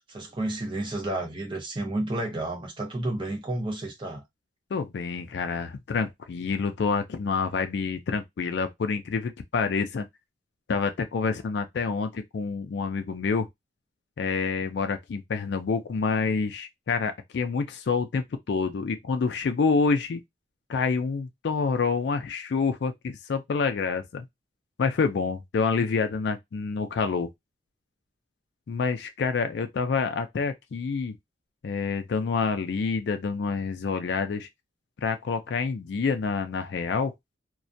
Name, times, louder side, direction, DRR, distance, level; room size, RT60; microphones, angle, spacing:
voice 1, 0.1-4.2, right 1 dB, 30° right, 0.8 m, -31 dB
voice 2, 4.7-10.0 10.7-13.5 14.2-20.2 20.7-24.3 24.8-27.3 28.7-31.2 31.6-34.5 35.0-37.1, left 5 dB, 65° left, 0.4 m, -27 dB
2.2 x 2.1 x 2.6 m
head